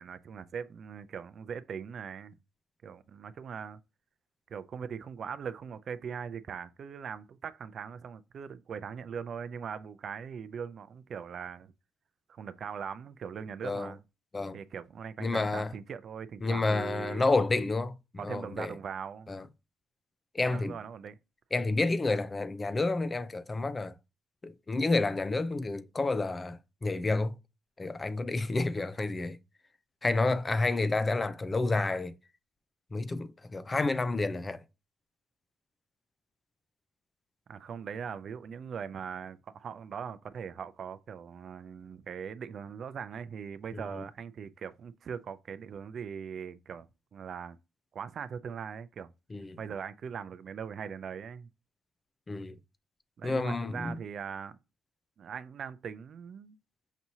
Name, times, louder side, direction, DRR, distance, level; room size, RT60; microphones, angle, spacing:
voice 1, 0.0-2.3 2.8-3.8 4.5-11.7 12.3-14.0 14.5-17.3 18.2-19.3 20.4-21.2 37.5-47.6 47.9-49.1 49.6-51.5 53.2-54.6 55.2-56.6, right 7 dB, 55° right, 0.4 m, -40 dB
voice 2, 15.2-15.7 16.4-17.9 18.2-18.7 19.3-19.4 20.3-20.7 21.5-23.9 24.4-27.3 27.8-29.4 30.0-32.1 32.9-34.6 43.7-44.0 49.3-49.6 52.3-52.6 53.2-53.9, left 3 dB, 25° left, 0.4 m, -30 dB
5.9 x 2.7 x 2.7 m
cardioid pair, 90°, 0 cm